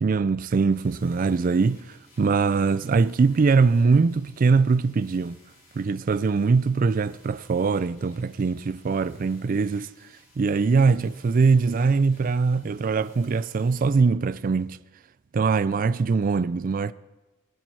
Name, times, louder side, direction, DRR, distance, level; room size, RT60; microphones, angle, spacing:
voice 1, 0.0-5.4 5.7-9.9 10.4-14.8 15.3-16.9, right 4 dB, 40° right, 0.4 m, -22 dB
sound 1, 0.7-14.0, left 1 dB, 50° left, 5.7 m, -58 dB
19.5 x 10.0 x 4.7 m
head